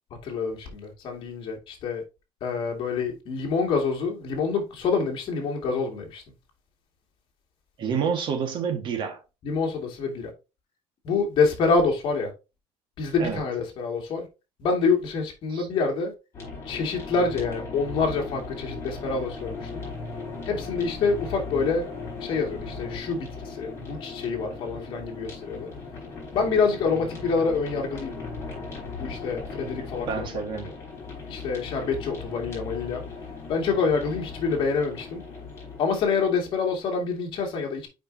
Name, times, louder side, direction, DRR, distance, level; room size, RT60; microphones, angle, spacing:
voice 1, 0.2-2.0 2.4-6.2 9.4-10.3 11.0-12.3 13.0-14.3 14.6-16.1 16.7-19.9 20.4-21.9 22.2-25.7 26.3-28.2 29.0-30.3 30.7-30.8 31.3-33.0 33.5-35.2 35.8-37.9, left 4 dB, 50° left, 2.3 m, -26 dB
voice 2, 7.8-9.2 13.2-13.4 15.5-15.7 30.1-30.7, right 6 dB, 50° right, 1.7 m, -28 dB
sound 1, 16.3-35.8, left 4 dB, 25° left, 4.2 m, -37 dB
7.6 x 5.1 x 2.8 m
cardioid pair, 165°, 11 cm